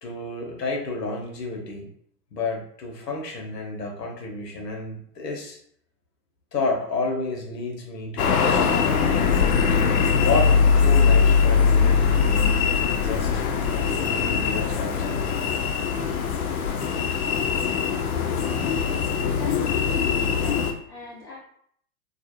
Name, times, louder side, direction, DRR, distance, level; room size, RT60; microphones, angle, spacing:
voice 1, 0.0-1.9 2.3-5.6 6.5-8.9 10.1-15.4, left 3 dB, 80° left, 0 dB, 0.9 m, -31 dB
sound 1, 8.2-20.7, left 6 dB, 65° left, 0.5 m, -21 dB
voice 2, 19.3-21.4, left 3 dB, 5° left, -12 dB, 0.4 m, -41 dB
2.4 x 2.0 x 2.9 m, 0.64 s
figure-of-eight pair, 100°, 48 cm